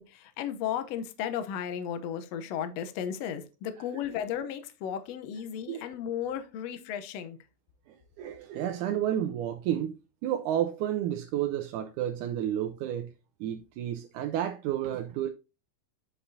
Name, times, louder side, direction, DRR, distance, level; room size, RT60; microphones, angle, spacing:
voice 1, 0.0-7.4, left 9 dB, 75° left, 1.6 m, -34 dB
voice 2, 7.9-13.1 13.4-15.3, right 11 dB, 75° right, 2.0 m, -31 dB
7.9 x 6.7 x 2.7 m
omnidirectional pair, 3.9 m